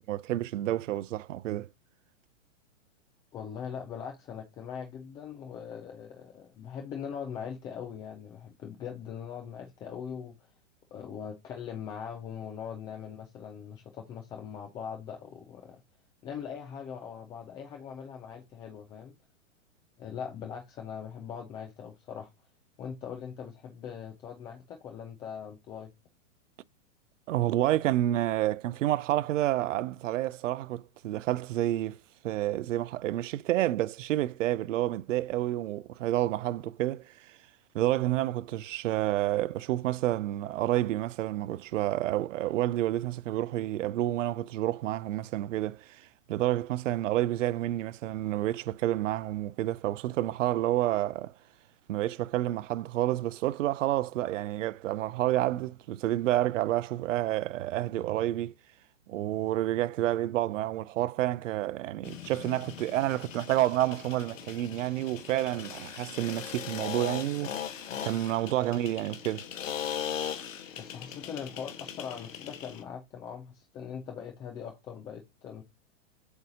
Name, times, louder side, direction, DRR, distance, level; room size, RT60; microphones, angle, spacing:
voice 1, 0.1-1.7 27.3-32.0 32.2-37.4 37.7-51.3 51.9-58.5 59.1-67.7 68.0-69.5, right 14 dB, 75° right, 0.5 m, -29 dB
voice 2, 3.3-10.3 10.9-15.8 16.2-19.2 20.0-22.3 22.8-25.9 68.6-68.7 70.8-75.6, left 7 dB, 10° left, 0.3 m, -41 dB
sound 1, 62.0-72.8, left 8 dB, 80° left, 1.4 m, -39 dB
8.0 x 2.7 x 4.8 m
hypercardioid pair, 135°, 39 cm